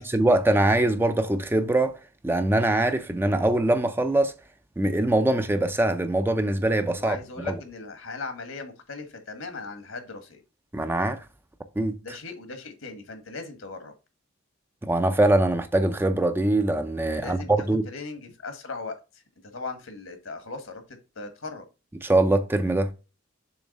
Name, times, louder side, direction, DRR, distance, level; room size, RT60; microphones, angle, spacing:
voice 1, 0.0-2.0 2.2-4.3 4.8-7.2 7.4-7.5 10.7-11.2 11.8-12.0 14.8-17.9 22.0-22.9, right 1 dB, 10° right, 0.4 m, -23 dB
voice 2, 6.9-10.4 12.0-13.9 17.1-17.5 17.9-19.2 19.5-21.7, left 3 dB, 75° left, 1.5 m, -38 dB
7.1 x 3.1 x 5.2 m
head